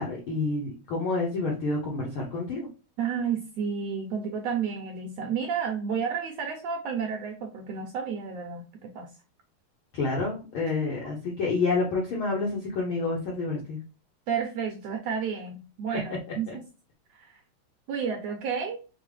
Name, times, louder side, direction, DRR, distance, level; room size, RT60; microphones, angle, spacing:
voice 1, 0.0-2.7 9.9-13.8 16.5-16.6, left 3 dB, 75° left, -3 dB, 1.2 m, -28 dB
voice 2, 3.0-8.7 8.9-9.1 14.3-16.6 17.1-17.4 17.9-18.8, right 6 dB, 80° right, 2 dB, 1.5 m, -31 dB
5.1 x 2.0 x 3.2 m, 0.33 s
omnidirectional pair, 3.5 m